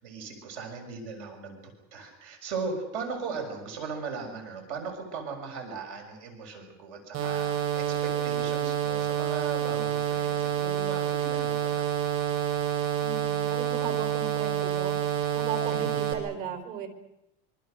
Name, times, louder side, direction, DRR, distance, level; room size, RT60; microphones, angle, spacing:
voice 1, 0.0-7.5 7.7-11.8 15.7-16.0, right 4 dB, 85° right, 4 dB, 6.6 m, -38 dB
sound 1, 7.1-16.1, right 10 dB, 40° right, 6.6 m, -28 dB
voice 2, 13.0-14.9 15.3-16.9, right 7 dB, 65° right, 8 dB, 5.1 m, -36 dB
26.0 x 25.0 x 6.6 m, 0.86 s
cardioid pair, 180°, 34 cm